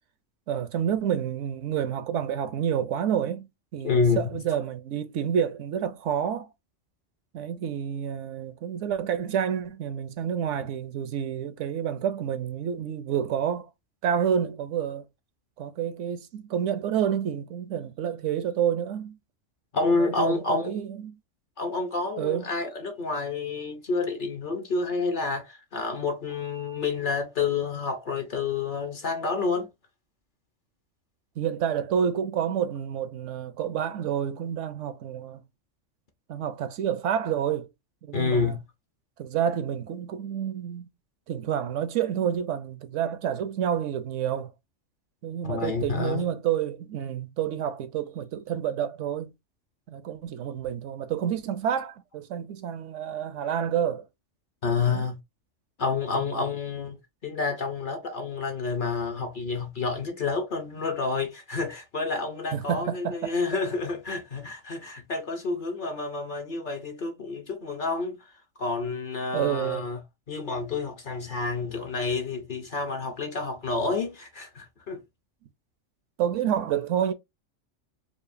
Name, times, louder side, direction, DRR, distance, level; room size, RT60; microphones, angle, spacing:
voice 1, 0.5-6.5 7.3-13.7 14.0-15.0 15.6-19.2 20.0-21.2 22.2-22.5 31.4-35.4 36.3-37.7 38.0-38.6 39.2-40.9 41.3-44.5 45.2-49.3 49.9-54.1 54.9-55.1 56.2-56.5 62.5-63.4 69.3-69.9 76.2-77.1, right 9 dB, 75° right, 0.9 m, -29 dB
voice 2, 3.8-4.2 19.7-20.8 21.6-29.7 38.1-38.6 45.4-46.2 54.6-55.2 55.8-57.0 57.2-68.2 68.6-70.0 70.3-75.0, left 4 dB, 50° left, 0.7 m, -29 dB
4.8 x 2.4 x 2.5 m
omnidirectional pair, 1.3 m